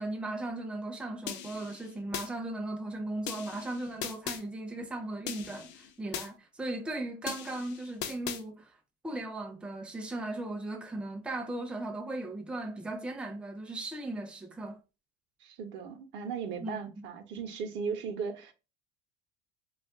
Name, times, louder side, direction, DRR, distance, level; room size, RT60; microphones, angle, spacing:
voice 1, 0.0-8.7 9.0-14.8 16.6-17.0, right 2 dB, 5° right, 0.5 m, -37 dB
sound 1, 1.3-2.3 3.3-4.4 5.3-6.3 7.3-8.4, left 9 dB, 55° left, 0.5 m, -39 dB
voice 2, 15.4-18.5, right 6 dB, 60° right, 0.7 m, -37 dB
2.3 x 2.2 x 3.6 m
supercardioid pair, 90°, 21 cm